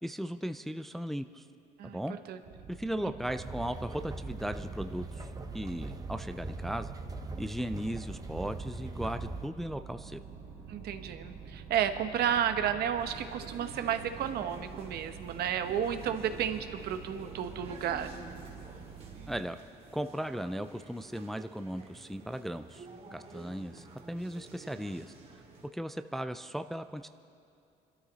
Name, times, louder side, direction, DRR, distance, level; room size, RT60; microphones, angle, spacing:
voice 1, 0.0-1.5 1.8-2.2 2.7-5.3 5.5-6.9 7.4-10.2 19.3-19.6 19.9-22.9 23.1-25.1 25.7-27.1, equal, ahead, 9 dB, 0.4 m, -37 dB
sound 1, 2.4-19.4, right 5 dB, 85° right, 2.1 m, -48 dB
sound 2, 3.3-9.5, right 2 dB, 20° right, 0.9 m, -41 dB
voice 2, 10.7-18.1, right 9 dB, 70° right, 8 dB, 1.0 m, -32 dB
sound 3, 13.0-25.7, right 3 dB, 35° right, 2.3 m, -51 dB
25.0 x 13.0 x 4.1 m, 2.5 s
cardioid pair, 110°, 17 cm